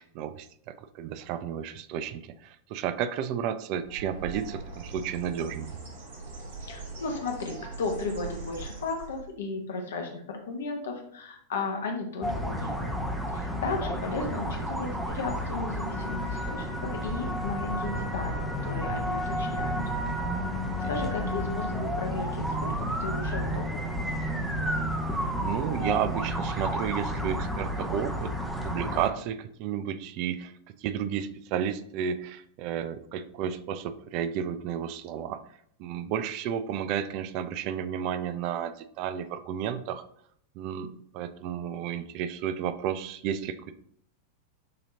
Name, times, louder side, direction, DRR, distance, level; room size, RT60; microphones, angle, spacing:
voice 1, 0.0-5.7 25.4-28.3 28.6-30.5 30.8-35.4 35.8-40.0 40.6-43.7, right 9 dB, 45° right, 12 dB, 0.3 m, -32 dB
Bird, 3.8-9.3, right 3 dB, 60° right, 1.1 m, -41 dB
voice 2, 6.6-13.0 13.3-19.8 20.9-24.0, left 3 dB, 65° left, 2 dB, 0.9 m, -35 dB
sound 1, 12.2-29.1, equal, ahead, 0.7 m, -31 dB
6.6 x 2.8 x 2.8 m, 0.65 s
figure-of-eight pair, 90°, 0 cm